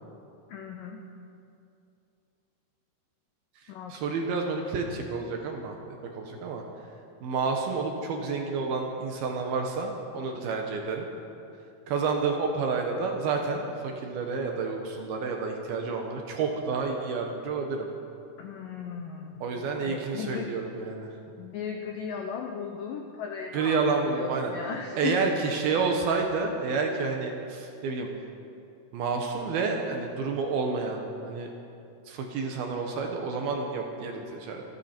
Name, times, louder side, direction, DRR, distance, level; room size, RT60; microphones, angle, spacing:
voice 1, 0.5-1.0 3.7-4.1 18.4-19.3 19.8-20.5 21.4-25.4, left 7 dB, 85° left, 3 dB, 1.9 m, -36 dB
voice 2, 3.6-6.6 7.2-11.1 11.9-17.9 19.4-21.1 23.5-24.5 25.0-28.1 28.9-31.5 32.1-34.6, right 4 dB, 70° right, 2 dB, 2.6 m, -29 dB
26.5 x 11.5 x 4.4 m, 2.7 s
omnidirectional pair, 5.1 m